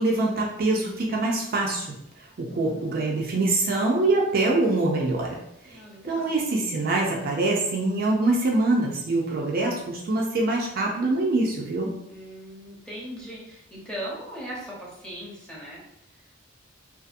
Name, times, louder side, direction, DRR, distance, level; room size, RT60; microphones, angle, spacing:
voice 1, 0.0-1.9 2.4-5.4 5.7-5.8 6.0-12.0, right 2 dB, 45° right, -1 dB, 0.4 m, -24 dB
voice 2, 2.5-3.4 5.7-6.4 12.1-15.8, equal, 5° left, -6 dB, 0.7 m, -39 dB
2.6 x 2.4 x 2.4 m, 0.79 s
head